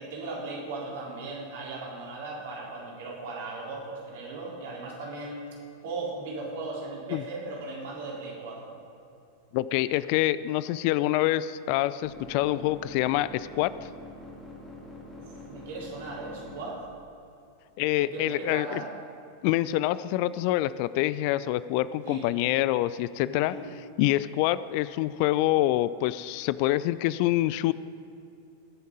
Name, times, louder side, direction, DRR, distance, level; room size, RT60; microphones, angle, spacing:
voice 1, 0.0-5.4 5.8-8.7 15.2-16.8 17.9-18.9 22.0-22.3 23.3-23.7, right 3 dB, 55° right, -3 dB, 3.9 m, -37 dB
voice 2, 9.5-13.9 17.8-18.8 19.4-23.5 24.0-27.7, left 15 dB, 45° left, 17 dB, 0.3 m, -26 dB
sound 1, 11.9-16.9, left 2 dB, 15° left, 2.9 m, -46 dB
21.5 x 7.3 x 5.4 m, 2.6 s
figure-of-eight pair, 90°, 0 cm